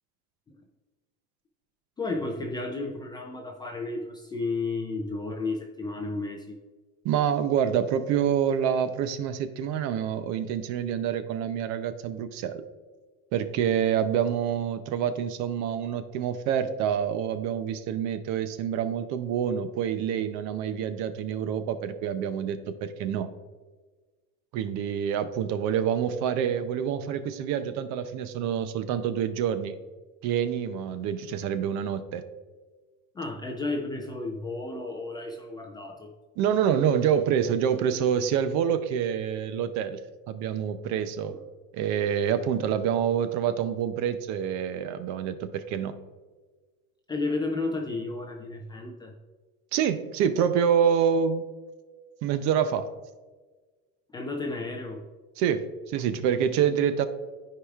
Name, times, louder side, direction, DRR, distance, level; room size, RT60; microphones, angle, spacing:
voice 1, 2.0-6.6 33.1-36.1 41.3-41.4 47.1-49.1 54.1-55.0, left 3 dB, 15° left, 2 dB, 0.3 m, -32 dB
voice 2, 7.0-12.6 13.3-23.3 24.5-29.7 30.2-32.2 36.4-40.0 40.3-41.4 41.7-46.0 49.7-51.4 52.2-52.9 55.4-57.1, right 8 dB, 55° right, 11 dB, 0.6 m, -27 dB
13.0 x 4.8 x 2.4 m, 1.3 s
cardioid pair, 175°, 35 cm